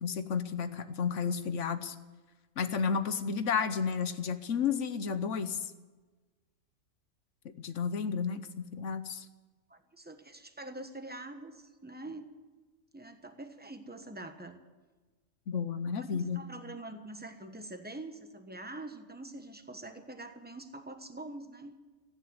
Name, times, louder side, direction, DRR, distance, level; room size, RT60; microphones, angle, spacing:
voice 1, 0.0-1.9 2.6-5.6 7.6-9.3 15.5-16.4, left 6 dB, 65° left, 11 dB, 1.2 m, -32 dB
voice 2, 9.7-12.3 12.9-14.6 15.9-21.8, right 2 dB, 10° right, 7 dB, 1.0 m, -45 dB
14.5 x 9.8 x 9.5 m, 1.3 s
omnidirectional pair, 1.4 m